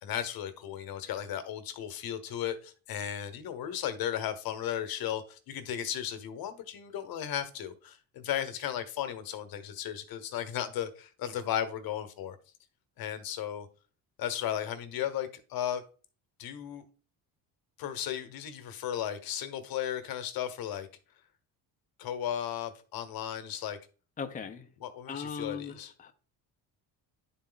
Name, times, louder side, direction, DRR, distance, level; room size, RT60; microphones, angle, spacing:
voice 1, 0.0-12.4 13.0-13.7 14.2-15.8 16.4-16.8 17.8-20.9 22.0-23.8 24.8-25.9, left 10 dB, 65° left, 1.1 m, -35 dB
voice 2, 24.2-24.7 25.1-26.1, left 6 dB, 20° left, 0.7 m, -38 dB
10.0 x 4.2 x 4.0 m
cardioid pair, 125°, 38 cm